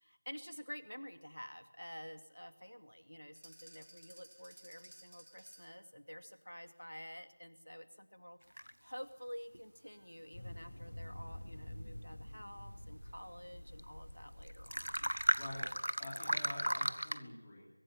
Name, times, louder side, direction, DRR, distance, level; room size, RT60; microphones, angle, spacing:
voice 1, 0.0-8.4 8.8-15.1, equal, 80° left, 10 dB, 2.4 m, -50 dB
sound 1, 3.4-5.8, right 1 dB, 40° right, 3.4 m, -58 dB
sound 2, 8.6-8.7 9.5-9.6 13.8-13.9 14.1-14.2 14.5-17.2, equal, 80° right, 1.4 m, -35 dB
sound 3, 10.3-15.8, left 1 dB, 35° left, 7.9 m, -49 dB
voice 2, 15.3-15.7 16.0-17.7, left 1 dB, 10° left, -4 dB, 3.4 m, -47 dB
23.5 x 16.0 x 8.6 m, 0.97 s
figure-of-eight pair, 175°, 0 cm